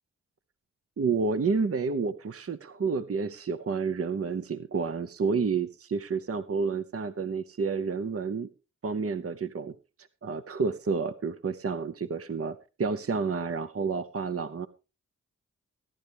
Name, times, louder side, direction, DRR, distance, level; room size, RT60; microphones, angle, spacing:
voice 1, 1.0-8.5 8.8-9.7 10.2-14.7, right 5 dB, 50° right, 11 dB, 0.8 m, -30 dB
19.0 x 11.0 x 3.4 m, 0.31 s
cardioid pair, 45°, 30 cm